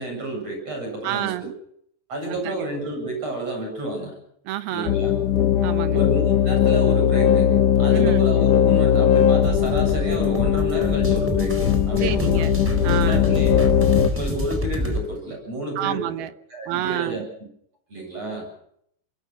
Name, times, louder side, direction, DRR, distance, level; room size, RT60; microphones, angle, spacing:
voice 1, 0.0-1.3 2.1-4.1 4.7-5.1 5.9-12.4 13.0-13.7 14.1-16.0 16.5-17.2 17.9-18.5, right 1 dB, 35° right, 9.1 m, -30 dB
voice 2, 1.0-1.5 2.3-2.6 4.5-5.0 5.6-6.0 7.9-8.2 12.0-12.6 12.8-13.7 15.8-16.3 16.7-17.3, right 13 dB, 70° right, 2.7 m, -29 dB
sound 1, 4.9-14.1, left 9 dB, 65° left, 2.2 m, -19 dB
sound 2, 9.4-15.0, left 1 dB, 5° right, 3.6 m, -28 dB
26.0 x 21.5 x 6.2 m
omnidirectional pair, 4.9 m